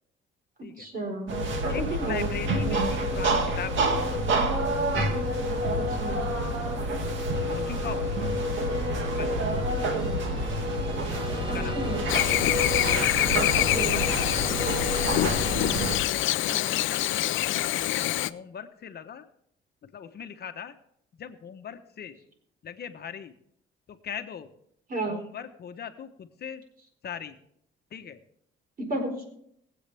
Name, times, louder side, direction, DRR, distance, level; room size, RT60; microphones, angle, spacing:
voice 1, 0.8-1.3 1.9-2.3 5.8-6.2 11.5-12.0 13.7-14.0 16.5-16.7 24.9-25.2 28.9-29.2, right 2 dB, 45° right, 3 dB, 4.5 m, -32 dB
sound 1, 1.3-16.0, right 1 dB, 70° right, 2.1 m, -28 dB
voice 2, 1.7-4.2 4.9-5.2 7.4-8.3 9.1-9.3 11.1-12.0 12.5-12.6 13.2-14.4 15.8-16.0 16.9-17.4 17.7-19.3 19.9-20.7 21.2-22.1 22.6-23.3 24.0-24.5 25.1-26.6 27.0-27.4 27.9-28.2, left 8 dB, 55° left, 8 dB, 1.1 m, -39 dB
sound 2, 6.9-16.4, equal, 25° right, 2.8 m, -39 dB
Chirp tweet / Buzz, 12.1-18.3, left 14 dB, 80° left, 0.5 m, -25 dB
21.5 x 8.1 x 3.4 m, 0.71 s
cardioid pair, 90°, 20 cm